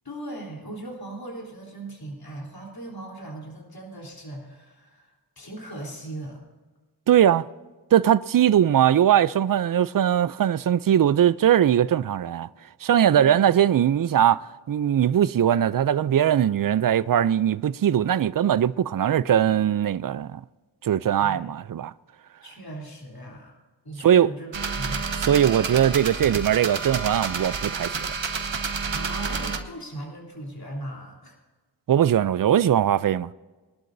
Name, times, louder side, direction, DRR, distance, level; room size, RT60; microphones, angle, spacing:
voice 1, 0.0-6.4 13.1-13.4 21.2-21.5 22.4-23.5 23.8-25.1 28.9-31.4, right 1 dB, 55° left, 3.6 m, -38 dB
voice 2, 7.1-7.5 7.9-12.5 12.8-14.4 14.7-20.4 20.8-21.9 24.0-24.3 25.2-28.1 31.9-33.3, right 10 dB, 50° right, 0.5 m, -20 dB
sound 1, 24.5-29.6, right 5 dB, 85° right, 1.1 m, -29 dB
22.0 x 12.0 x 2.7 m
cardioid pair, 45°, 44 cm